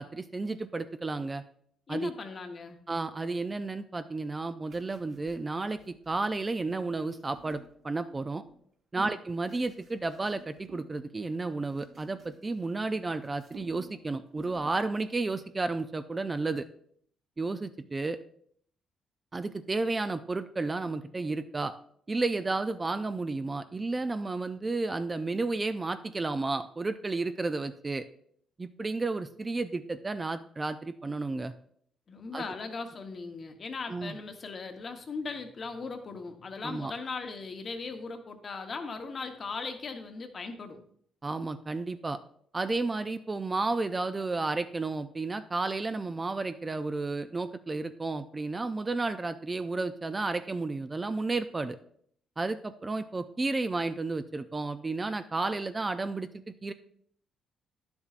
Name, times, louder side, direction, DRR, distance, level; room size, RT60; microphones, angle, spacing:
voice 1, 0.0-1.4 1.9-2.1 2.9-8.4 8.9-16.7 17.4-18.2 19.3-21.7 22.1-28.0 28.6-31.5 32.3-32.4 33.9-34.2 36.6-36.9 41.2-42.2 42.5-51.8 52.4-56.7, right 3 dB, 25° right, 10 dB, 0.4 m, -32 dB
voice 2, 1.9-2.8 9.0-9.1 32.1-40.8, left 4 dB, 45° left, 6 dB, 1.0 m, -38 dB
sound 1, 4.7-8.6 9.1-11.0 11.3-13.0 13.2-14.0 14.3-14.8 15.1-15.4, right 3 dB, 55° right, 1.3 m, -55 dB
10.5 x 7.0 x 2.5 m, 0.63 s
cardioid pair, 90°, 0 cm